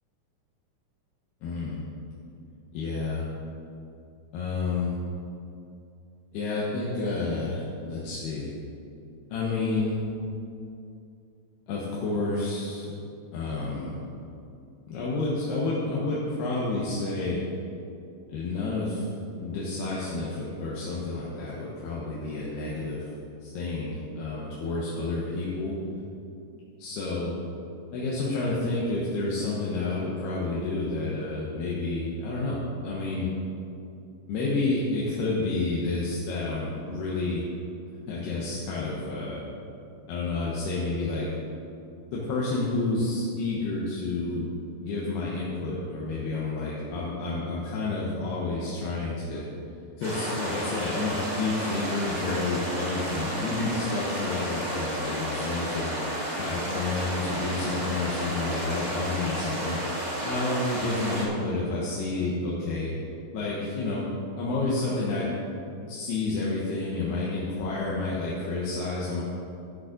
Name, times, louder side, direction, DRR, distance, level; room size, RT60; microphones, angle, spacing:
voice 1, 1.4-1.8 2.7-3.2 4.3-4.9 6.3-8.5 9.3-10.0 11.7-12.9 13.3-14.0 14.9-17.4 18.3-19.1 19.4-23.1 23.4-25.8 26.8-27.3 27.9-33.3 34.3-37.4 38.1-39.4 40.1-41.3 42.1-44.5 44.8-49.5 50.0-55.9 56.4-62.9 63.3-64.1 64.4-65.3 65.8-69.2, left 3 dB, 80° left, -6 dB, 3.3 m, -30 dB
sound 1, 50.0-61.2, equal, 75° right, 0.4 m, -32 dB
13.0 x 6.5 x 6.0 m, 2.6 s
omnidirectional pair, 4.7 m